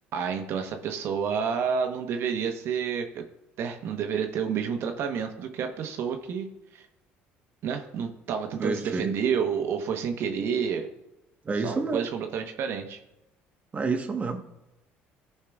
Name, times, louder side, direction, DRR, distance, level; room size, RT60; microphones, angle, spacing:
voice 1, 0.1-3.3 3.6-6.8 7.6-10.9 11.6-13.0, right 7 dB, 60° right, 5 dB, 1.0 m, -29 dB
voice 2, 8.6-9.1 11.4-12.1 13.7-14.4, right 4 dB, 30° right, 5 dB, 1.2 m, -28 dB
14.5 x 5.6 x 2.4 m, 0.93 s
supercardioid pair, 85°, 5 cm